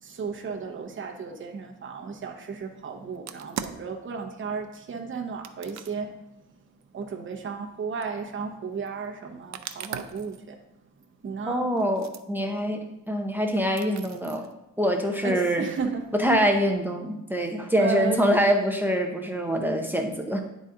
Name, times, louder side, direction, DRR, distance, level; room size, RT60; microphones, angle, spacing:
voice 1, 0.0-6.1 6.9-10.6 11.2-11.6 15.2-16.0 17.8-18.2, right 5 dB, 40° right, 2 dB, 0.9 m, -34 dB
sound 1, 3.2-3.9 5.4-6.0 7.1-7.2 8.0-8.1 9.5-10.4 11.2-11.3 11.8-12.2 12.7-12.8 13.2-13.3 13.8-14.5 15.2-16.8, right 9 dB, 65° right, 0.5 m, -39 dB
voice 2, 11.5-14.5 14.8-15.7 16.1-20.4, equal, 5° right, 2 dB, 0.7 m, -25 dB
9.7 x 4.1 x 3.7 m, 0.86 s
wide cardioid pair, 140°, 30 cm